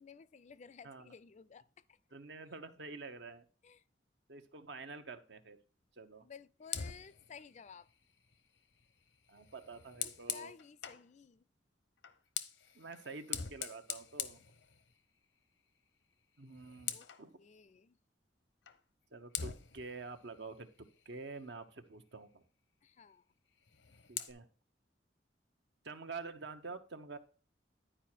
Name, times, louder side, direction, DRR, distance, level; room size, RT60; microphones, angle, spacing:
voice 1, 0.0-2.0 3.6-3.8 6.2-7.9 10.0-11.5 16.9-17.1 17.4-18.0 22.8-23.2, left 6 dB, 40° left, 0.4 m, -55 dB
voice 2, 2.1-3.5 4.3-5.6 6.0-6.3 9.3-10.5 12.7-14.4 16.4-17.4 19.1-20.7 21.0-22.4 24.1-24.5 25.8-27.2, right 4 dB, 70° right, 0.9 m, -47 dB
Fire, 6.6-11.1 12.0-15.2 15.6-15.9 16.2-17.3 18.7-18.8 19.3-21.6 23.5-24.3, left 9 dB, 85° left, 0.8 m, -45 dB
10.0 x 4.9 x 4.4 m
head